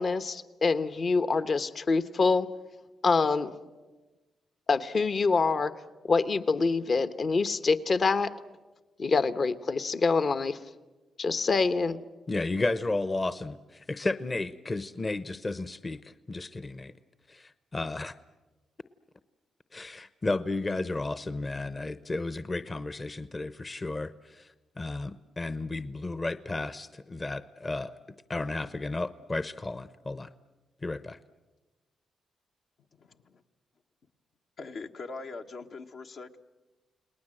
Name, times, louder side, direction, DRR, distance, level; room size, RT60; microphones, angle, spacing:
voice 1, 0.0-2.5 3.0-3.5 4.7-5.7 6.1-8.3 9.0-10.6 11.2-12.0, left 4 dB, 50° left, 11 dB, 1.1 m, -25 dB
voice 2, 12.3-16.9 17.3-18.1 19.7-24.5 24.8-28.0 28.3-30.3 30.8-31.2, left 2 dB, 30° left, 13 dB, 0.9 m, -33 dB
voice 3, 34.6-36.4, left 3 dB, 70° left, 4 dB, 1.3 m, -41 dB
30.0 x 19.5 x 7.8 m, 1.2 s
supercardioid pair, 60°, 0 cm